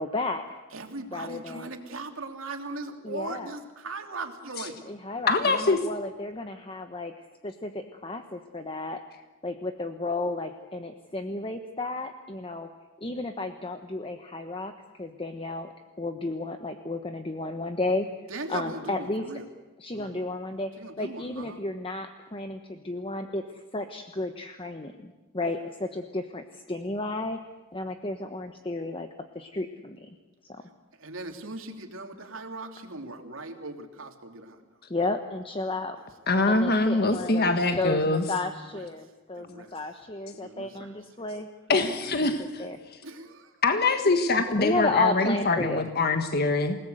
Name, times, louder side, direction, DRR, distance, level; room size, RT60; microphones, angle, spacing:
voice 1, 0.0-0.6 1.1-1.7 3.0-3.5 4.9-9.0 9.4-12.7 13.0-18.1 18.5-19.3 19.8-27.4 27.7-29.1 29.3-30.1 30.5-30.6 34.9-36.0 36.5-41.9 42.6-42.8 44.6-45.8, left 2 dB, 25° left, 6 dB, 1.3 m, -33 dB
voice 2, 0.7-4.8 18.3-19.5 19.9-20.2 20.8-21.6 31.0-34.6 37.2-37.4 37.9-38.0 38.7-38.9 39.4-39.7 40.3-40.9 42.0-42.3 43.0-43.5, right 2 dB, 90° right, 4 dB, 3.0 m, -39 dB
voice 3, 5.3-5.8 36.3-38.2 41.7-42.6 43.6-46.8, left 3 dB, 50° left, 6 dB, 1.6 m, -24 dB
28.5 x 18.5 x 8.1 m, 1.1 s
head